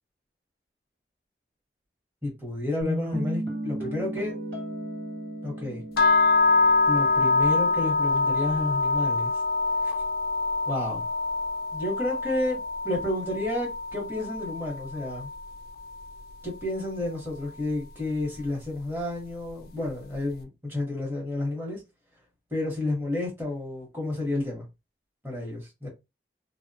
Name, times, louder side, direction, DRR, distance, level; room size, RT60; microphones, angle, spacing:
voice 1, 2.2-4.4 5.4-5.8 6.8-9.3 9.8-9.9 10.7-11.1 11.7-12.6 12.8-15.3 16.4-21.8 22.5-24.7 25.2-25.9, left 2 dB, 10° right, 0.8 m, -31 dB
Guitar, 2.8-7.9, equal, 85° right, 1.4 m, -34 dB
sound 1, 6.0-16.0, left 3 dB, 60° left, 0.3 m, -25 dB
2.3 x 2.0 x 2.6 m
head